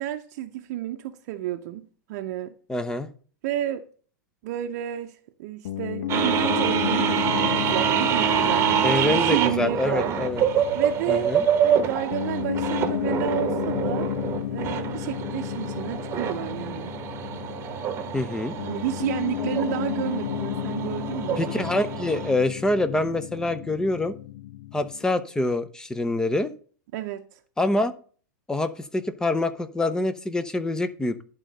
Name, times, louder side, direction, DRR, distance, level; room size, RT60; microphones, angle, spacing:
voice 1, 0.0-1.8 2.1-2.5 3.4-3.8 4.4-10.2 10.7-11.3 11.6-14.1 14.5-17.0 18.6-21.4 26.9-27.4, right 12 dB, 55° right, 0.7 m, -31 dB
voice 2, 2.7-3.1 8.8-10.4 11.1-11.5 18.1-18.5 21.4-24.2 24.7-26.5 27.6-27.9 28.5-31.1, left 2 dB, 5° left, 0.6 m, -25 dB
Piano, 5.6-25.0, left 13 dB, 75° left, 0.4 m, -33 dB
sound 1, 6.1-22.3, right 8 dB, 25° right, 1.1 m, -26 dB
11.0 x 3.8 x 6.5 m
supercardioid pair, 135°, 10 cm